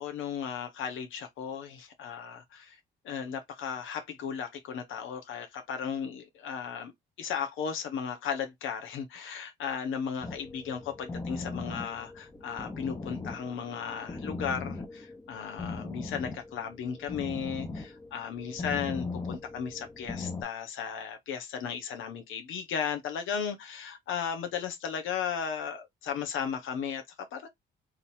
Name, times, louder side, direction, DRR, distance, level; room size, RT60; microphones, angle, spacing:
voice 1, 0.0-2.8 3.0-6.9 7.2-27.5, left 7 dB, 85° left, 1.1 m, -35 dB
sound 1, 10.2-20.4, left 3 dB, 15° left, 0.9 m, -39 dB
3.7 x 3.1 x 2.7 m
cardioid pair, 90°, 20 cm